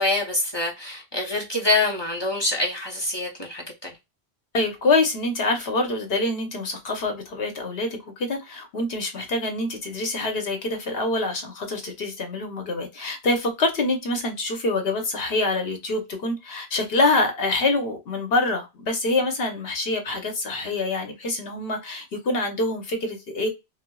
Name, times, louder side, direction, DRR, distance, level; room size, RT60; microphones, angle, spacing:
voice 1, 0.0-4.0, left 2 dB, 30° left, 0.6 m, -25 dB
voice 2, 4.5-23.5, left 2 dB, 65° left, 1.1 m, -25 dB
4.4 x 2.0 x 2.2 m
omnidirectional pair, 1.1 m